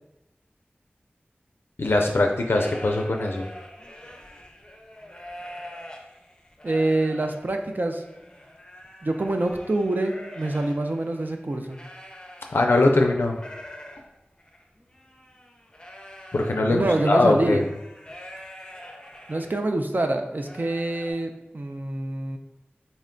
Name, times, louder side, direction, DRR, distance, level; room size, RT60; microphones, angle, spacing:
voice 1, 1.8-3.5 12.5-13.4 16.3-17.6, left 2 dB, 80° left, 2 dB, 0.4 m, -21 dB
sound 1, 2.4-12.8 13.1-19.5 19.9-20.0 20.4-21.1, equal, 20° left, 0.6 m, -44 dB
voice 2, 6.6-8.0 9.0-11.8 16.7-17.6 19.3-22.4, right 2 dB, 50° right, 5 dB, 0.4 m, -26 dB
4.1 x 2.2 x 3.7 m, 0.98 s
wide cardioid pair, 45°, 4 cm